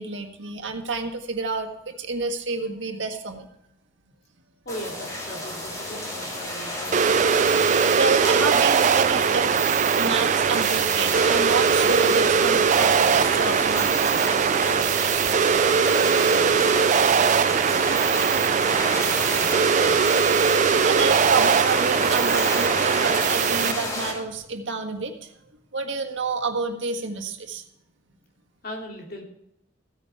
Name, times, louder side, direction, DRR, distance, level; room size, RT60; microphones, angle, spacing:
voice 1, 0.0-3.5 7.9-9.5 9.9-14.5 18.2-18.4 20.8-25.3 25.7-27.6, right 4 dB, 85° right, 4 dB, 1.7 m, -29 dB
voice 2, 4.6-7.3 16.0-20.0 28.6-29.2, equal, 55° left, 0 dB, 2.9 m, -39 dB
sound 1, 4.7-24.1, left 1 dB, 20° left, 3.7 m, -30 dB
sound 2, 6.9-23.7, right 7 dB, 40° right, 0.3 m, -21 dB
15.5 x 9.3 x 3.5 m, 0.81 s
head